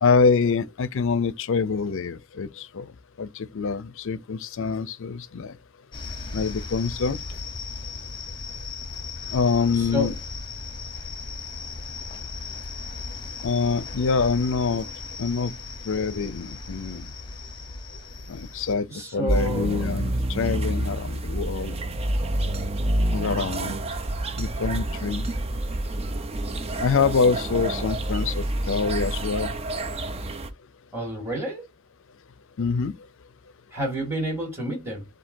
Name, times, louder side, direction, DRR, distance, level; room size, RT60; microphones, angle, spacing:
voice 1, 0.0-2.8 3.2-5.5 6.3-7.2 9.3-10.1 13.4-14.9 15.2-15.5 15.9-17.1 18.3-18.9 19.1-21.8 23.1-23.8 24.4-25.3 26.8-29.5 32.6-32.9, left 5 dB, 65° left, 0.5 m, -25 dB
sound 1, 5.9-18.7, left 3 dB, 25° left, 0.9 m, -37 dB
voice 2, 9.7-10.1 18.9-19.9 30.9-31.6 33.7-35.1, equal, 10° right, 2.4 m, -29 dB
sound 2, 19.3-30.5, right 1 dB, 30° right, 0.5 m, -28 dB
7.3 x 2.7 x 2.7 m
head